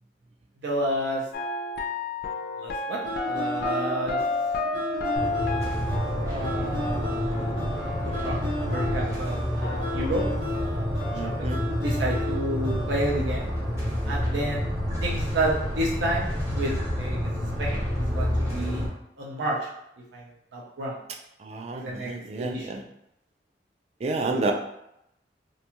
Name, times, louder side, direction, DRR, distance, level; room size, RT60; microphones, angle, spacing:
voice 1, 0.6-1.2 2.6-3.0 3.3-4.2 6.2-7.9 8.2-10.3 10.6-11.5 11.8-13.5 14.1-17.2 17.6-18.9 19.2-19.6 20.1-20.2 20.5-21.0 21.7-22.1 22.4-22.7, right 1 dB, 85° right, -3 dB, 0.5 m, -31 dB
sound 1, 1.3-9.3 9.6-11.4, left 2 dB, 55° left, 0.3 m, -32 dB
sound 2, 3.0-13.1, left 2 dB, 65° right, 1.0 m, -35 dB
sound 3, 5.2-18.9, equal, 15° right, 0.7 m, -29 dB
voice 2, 11.1-11.6 21.4-22.8 24.0-24.5, right 3 dB, 35° right, 2 dB, 0.3 m, -30 dB
2.5 x 2.2 x 2.9 m, 0.80 s
head